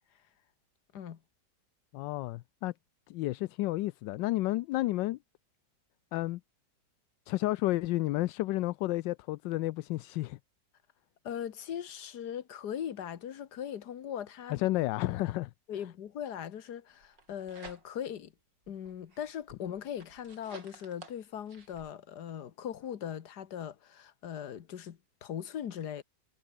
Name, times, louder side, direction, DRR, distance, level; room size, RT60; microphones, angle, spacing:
voice 1, 1.9-2.7 3.1-5.2 6.1-6.4 7.3-10.4 14.5-15.5, left 17 dB, 85° left, 1.2 m, -31 dB
voice 2, 11.2-14.6 15.7-18.3 18.7-26.0, left 9 dB, 65° left, 1.8 m, -40 dB
sound 1, 17.0-18.2 18.6-21.9, right 3 dB, 75° right, 4.8 m, -53 dB
omnidirectional pair, 1.9 m